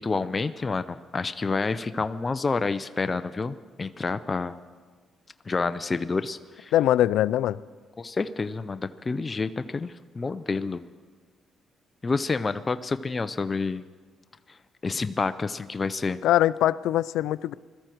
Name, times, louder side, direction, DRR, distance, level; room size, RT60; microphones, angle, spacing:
voice 1, 0.0-4.6 5.5-6.7 8.0-10.8 12.0-13.8 14.5-14.6 14.8-16.2, left 4 dB, 30° left, 12 dB, 0.5 m, -29 dB
voice 2, 6.7-7.6 16.2-17.5, left 13 dB, 85° left, 19 dB, 0.4 m, -22 dB
21.0 x 13.5 x 4.6 m, 1.5 s
cardioid pair, 90°, 0 cm